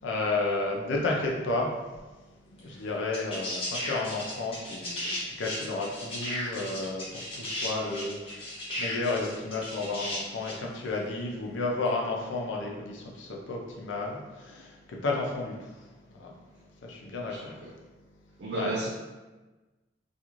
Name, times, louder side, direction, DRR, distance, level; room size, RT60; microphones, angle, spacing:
voice 1, 0.0-1.7 2.6-16.3 16.8-17.7 18.5-18.7, left 3 dB, 85° left, -1 dB, 0.5 m, -32 dB
sound 1, 2.6-2.7 3.1-10.6 11.9-12.0, left 1 dB, 30° left, 0.9 m, -35 dB
voice 2, 17.3-17.7 18.4-18.9, right 2 dB, 65° right, -5 dB, 0.4 m, -33 dB
2.4 x 2.4 x 2.9 m, 1.2 s
head